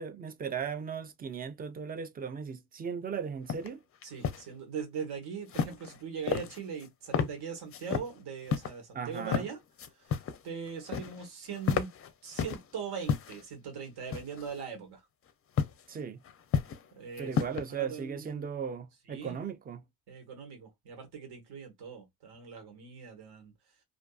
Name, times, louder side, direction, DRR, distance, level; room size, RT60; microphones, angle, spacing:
voice 1, 0.0-3.8 8.9-9.5 15.9-16.2 17.2-19.8, right 6 dB, 25° right, 0.4 m, -37 dB
sound 1, 3.5-3.7 4.0-4.4 5.5-6.0 6.3-6.9 7.1-7.3 7.7-8.1 8.5-8.7 9.2-9.5 9.8-10.4 10.7-11.3 11.5-12.6 13.0-13.4 14.1-14.5 15.6-15.8 16.2-16.9 17.2-17.6, left 7 dB, 35° left, 0.4 m, -31 dB
voice 2, 4.0-9.6 10.0-10.2 10.4-11.9 12.2-15.0 16.9-18.5 19.1-19.4 20.1-23.5, right 6 dB, 80° right, 1.3 m, -41 dB
2.6 x 2.4 x 2.3 m
cardioid pair, 120°, 39 cm